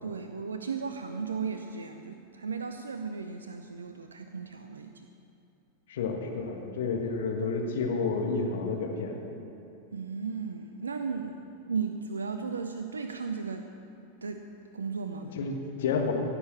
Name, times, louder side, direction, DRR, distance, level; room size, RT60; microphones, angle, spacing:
voice 1, 0.0-5.1 9.9-13.7 14.2-14.4 14.7-15.4, right 5 dB, 75° right, 7 dB, 0.5 m, -35 dB
voice 2, 5.9-9.1 15.3-16.1, left 4 dB, 60° left, 2 dB, 1.6 m, -30 dB
16.5 x 6.8 x 7.3 m, 2.7 s
figure-of-eight pair, 90°, 0 cm